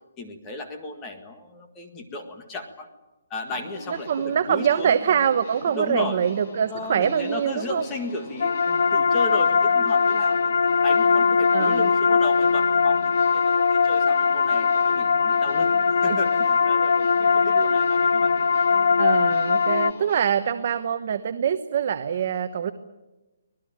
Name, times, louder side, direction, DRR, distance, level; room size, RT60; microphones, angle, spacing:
voice 1, 0.2-2.9 3.3-5.0 5.7-6.2 6.7-10.5 10.8-15.7 16.0-18.3, left 2 dB, 15° left, 5 dB, 1.9 m, -35 dB
sound 1, 3.5-20.2, left 1 dB, 35° left, 5.8 m, -42 dB
voice 2, 3.9-7.8 11.5-11.9 16.1-16.2 17.4-17.9 19.0-22.7, right 8 dB, 35° right, 8 dB, 1.1 m, -24 dB
sound 2, 8.4-19.9, left 5 dB, 60° left, 0.9 m, -20 dB
25.0 x 19.5 x 9.0 m, 1.0 s
hypercardioid pair, 175°, 0 cm